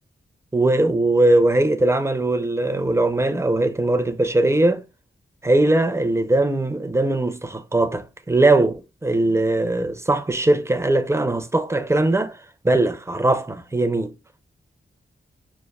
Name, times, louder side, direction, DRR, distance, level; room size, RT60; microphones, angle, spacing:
voice 1, 0.5-4.8 5.4-12.4 12.6-14.1, right 2 dB, 15° right, 0.5 m, -20 dB
6.3 x 2.5 x 2.3 m
wide cardioid pair, 130°, 21 cm